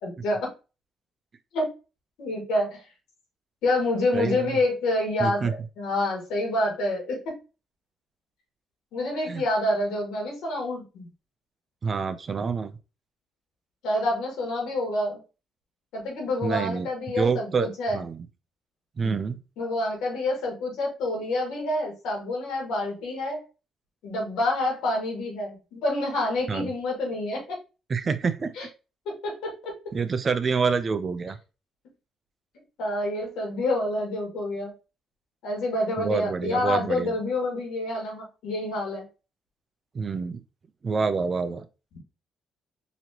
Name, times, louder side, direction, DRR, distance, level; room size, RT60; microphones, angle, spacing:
voice 1, 0.0-0.5 1.5-1.7 2.2-2.8 3.6-7.3 8.9-11.1 13.8-15.2 15.9-18.0 19.0-19.2 19.6-23.4 24.0-27.6 28.6-28.7 29.1-29.7 32.8-34.7 35.4-39.1, left 1 dB, 90° left, -1 dB, 1.9 m, -27 dB
voice 2, 4.1-4.6 5.2-5.5 9.3-9.4 11.8-12.7 16.4-16.9 17.2-18.3 19.0-19.4 26.5-26.7 27.9-28.7 29.9-31.4 36.0-37.2 39.9-40.4 40.8-41.7, right 5 dB, 40° right, 11 dB, 0.5 m, -27 dB
4.1 x 2.9 x 2.8 m, 0.30 s
cardioid pair, 90°, 0 cm